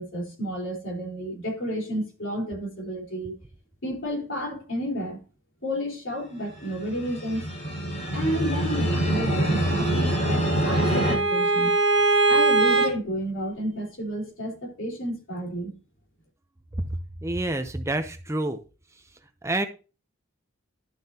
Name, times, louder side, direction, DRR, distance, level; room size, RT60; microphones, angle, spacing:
voice 1, 0.0-3.3 3.8-5.2 5.6-7.5 8.1-11.7 12.3-15.7, equal, 60° left, 4.2 m, -31 dB
sound 1, 6.6-11.1, right 1 dB, 30° left, 5.3 m, -25 dB
Bowed string instrument, 9.8-12.9, right 3 dB, 55° right, 1.9 m, -22 dB
voice 2, 17.2-18.6 19.4-19.7, right 2 dB, 15° right, 0.6 m, -27 dB
11.5 x 7.1 x 2.8 m
head